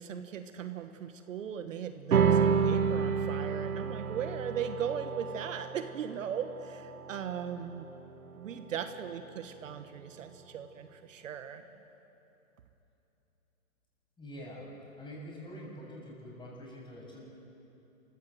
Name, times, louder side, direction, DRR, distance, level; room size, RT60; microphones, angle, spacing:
voice 1, 0.0-7.9 8.4-11.6, right 8 dB, 65° right, 9 dB, 1.3 m, -38 dB
sound 1, 2.1-8.8, right 6 dB, 85° right, 1.2 m, -30 dB
voice 2, 14.2-14.7 15.0-17.2, equal, 10° left, -3 dB, 6.9 m, -45 dB
26.5 x 15.5 x 7.9 m, 3.0 s
hypercardioid pair, 130°, 42 cm